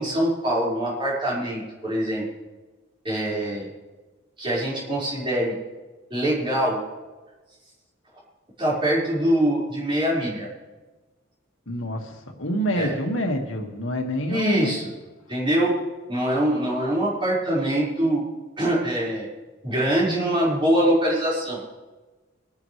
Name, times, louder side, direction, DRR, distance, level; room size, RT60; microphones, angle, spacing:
voice 1, 0.0-2.3 3.0-3.7 4.4-5.6 6.1-6.8 8.6-10.5 12.7-12.9 14.3-14.9 15.3-15.8 16.1-18.2 18.6-19.3 19.6-21.6, right 1 dB, 25° right, -6 dB, 5.0 m, -23 dB
voice 2, 11.7-14.8, equal, 75° left, 2 dB, 1.9 m, -27 dB
23.5 x 10.5 x 3.3 m, 1.2 s
head